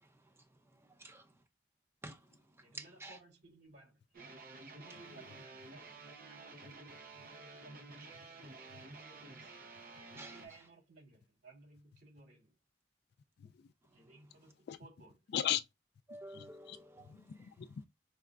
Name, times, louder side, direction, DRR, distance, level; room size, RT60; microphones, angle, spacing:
voice 1, 0.0-1.4 2.0-3.2 10.2-10.4 16.1-17.3, right 2 dB, 15° right, 0.7 m, -52 dB
voice 2, 2.6-4.0 4.4-9.6 10.1-12.5 13.9-15.2, right 3 dB, 70° right, 2.5 m, -60 dB
sound 1, 4.1-10.5, right 3 dB, 55° right, 0.6 m, -52 dB
voice 3, 15.3-15.6 16.3-16.8 17.1-17.9, left 10 dB, 65° left, 0.3 m, -37 dB
4.7 x 2.2 x 2.3 m
head